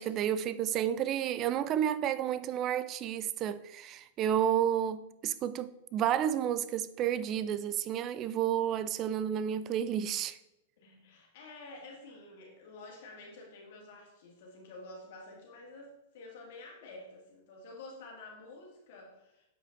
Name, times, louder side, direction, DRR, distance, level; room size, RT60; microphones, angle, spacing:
voice 1, 0.0-10.4, right 10 dB, 35° right, 0.4 m, -31 dB
voice 2, 10.8-19.5, left 2 dB, 65° left, 2.3 m, -50 dB
7.6 x 5.1 x 4.0 m
hypercardioid pair, 125°, 0 cm